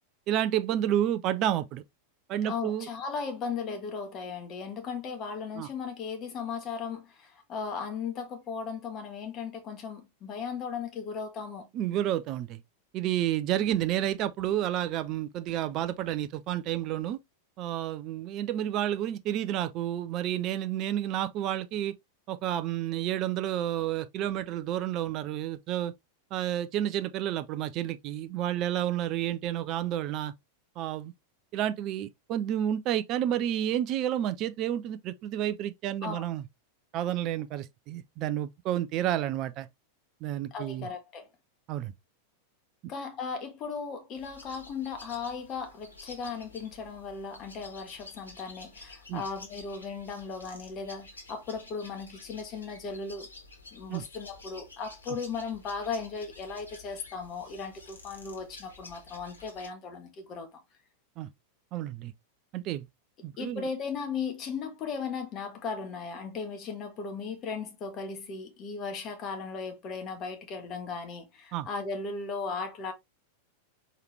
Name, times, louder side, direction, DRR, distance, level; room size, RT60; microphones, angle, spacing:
voice 1, 0.3-1.8 2.3-2.9 5.6-5.7 11.7-12.6 12.9-17.2 17.6-21.9 22.3-25.9 26.3-30.3 30.8-31.1 31.5-36.4 36.9-39.7 40.2-40.9 41.7-41.9 49.1-49.2 53.9-54.0 61.2-61.3 61.7-62.1 62.5-62.9 63.2-63.7 71.5-71.7, right 11 dB, 40° right, 0.4 m, -30 dB
voice 2, 2.4-11.7 36.0-36.3 40.5-41.3 42.9-53.3 53.7-60.6 63.4-72.9, left 5 dB, 35° left, 1.1 m, -37 dB
sound 1, 44.2-59.7, left 3 dB, 75° left, 1.6 m, -50 dB
4.7 x 3.2 x 3.2 m
figure-of-eight pair, 90°, 0 cm